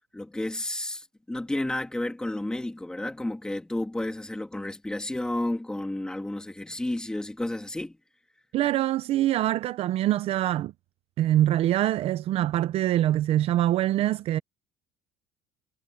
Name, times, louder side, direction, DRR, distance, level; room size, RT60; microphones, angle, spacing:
voice 1, 0.1-8.0, left 1 dB, 5° left, 2.5 m, -31 dB
voice 2, 8.5-10.7 11.2-14.4, right 13 dB, 50° right, 0.7 m, -24 dB
cardioid pair, 145°, 13 cm